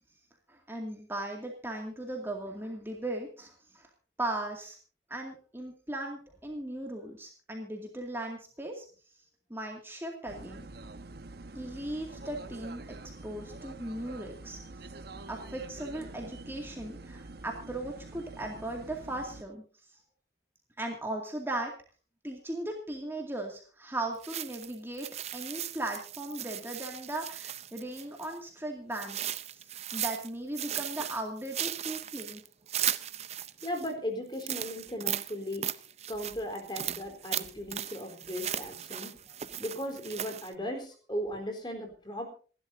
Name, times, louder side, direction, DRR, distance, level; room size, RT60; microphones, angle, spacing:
voice 1, 0.5-3.9 4.2-4.8 5.1-8.9 9.1-9.2 9.5-10.7 11.5-12.8 13.2-14.6 15.3-19.6 19.9-20.0 20.8-21.7 22.2-32.4, right 1 dB, 10° right, 1 dB, 2.3 m, -38 dB
sound 1, 10.3-19.4, right 2 dB, 55° right, 1.0 m, -46 dB
sound 2, 24.2-28.4 28.9-30.3 30.5-33.9 34.3-40.5, right 11 dB, 35° right, 0.6 m, -37 dB
voice 2, 33.6-35.7 36.1-39.1 39.6-42.3, equal, 25° left, 4 dB, 3.9 m, -37 dB
28.0 x 12.0 x 2.7 m, 0.38 s
head